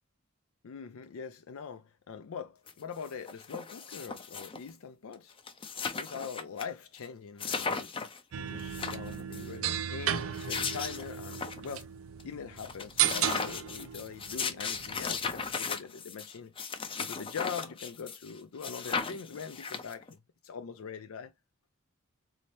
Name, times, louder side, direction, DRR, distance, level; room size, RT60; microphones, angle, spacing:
voice 1, 0.6-5.3 5.9-7.9 8.3-11.9 12.2-16.5 17.0-20.2 20.4-21.3, left 6 dB, 80° left, 0.4 m, -42 dB
sound 1, 2.7-2.8 3.0-4.7 5.1-5.2 5.4-6.6 7.0-7.1 7.4-8.2 8.6-9.5 10.2-11.8 12.2-12.3 12.6-18.3 18.6-20.1, left 5 dB, 25° left, 0.5 m, -36 dB
sound 2, 8.3-15.5, right 10 dB, 75° right, 0.4 m, -35 dB
4.1 x 2.8 x 3.2 m
head